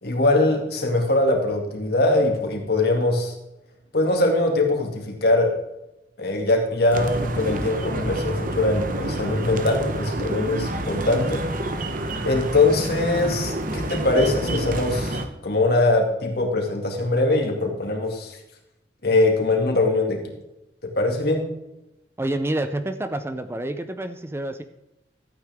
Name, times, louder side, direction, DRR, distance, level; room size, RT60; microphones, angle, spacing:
voice 1, 0.0-3.3 3.9-5.5 6.2-11.5 12.2-18.4 19.0-20.2 20.8-21.4, left 2 dB, 60° left, 2 dB, 2.3 m, -22 dB
sound 1, 6.9-15.3, right 1 dB, 50° right, 1.0 m, -28 dB
voice 2, 22.2-24.6, right 1 dB, 15° right, 9 dB, 0.5 m, -28 dB
13.0 x 8.9 x 3.6 m, 0.90 s
head